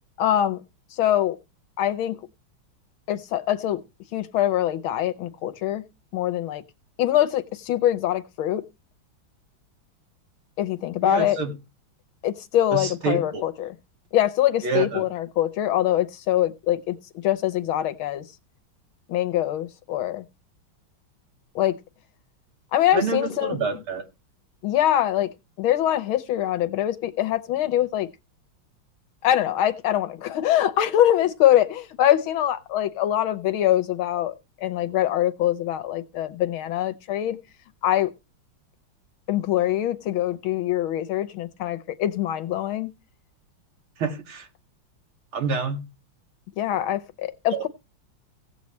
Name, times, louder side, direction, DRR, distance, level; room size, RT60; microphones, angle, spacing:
voice 1, 0.2-0.6 0.9-1.4 1.8-2.2 3.1-3.8 4.1-5.8 6.1-6.6 7.0-8.6 10.6-11.4 12.2-13.7 14.1-17.0 17.2-18.2 19.1-20.2 21.5-21.8 22.7-23.6 24.6-25.3 25.6-28.1 29.2-34.3 34.6-37.4 37.8-38.1 39.3-42.9 46.6-47.7, left 12 dB, 80° left, 1.6 m, -23 dB
voice 2, 11.0-11.5 12.7-13.4 14.6-15.0 22.9-24.0 44.0-44.5 45.3-45.8 47.5-47.7, right 4 dB, 90° right, 2.9 m, -27 dB
16.5 x 8.2 x 3.1 m
omnidirectional pair, 2.3 m